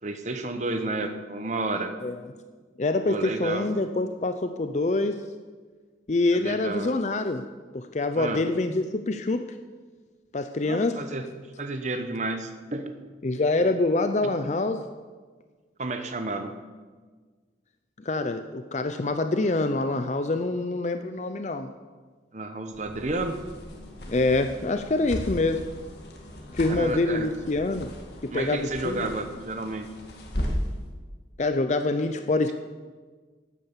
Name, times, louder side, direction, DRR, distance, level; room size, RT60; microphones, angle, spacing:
voice 1, 0.0-1.9 3.1-3.7 6.3-6.9 8.2-8.4 10.6-11.3 11.6-13.0 15.8-16.5 22.3-23.4 26.7-27.3 28.3-29.9, right 2 dB, 40° right, 7 dB, 1.0 m, -31 dB
voice 2, 2.8-5.2 6.1-7.4 7.7-9.4 10.3-11.0 13.2-14.8 18.0-21.7 24.1-25.7 26.5-27.9 28.2-29.1 31.4-32.5, left 2 dB, 40° left, 8 dB, 0.5 m, -25 dB
sound 1, 22.7-30.8, equal, 65° left, 2.0 m, -36 dB
12.5 x 8.8 x 7.3 m, 1.4 s
head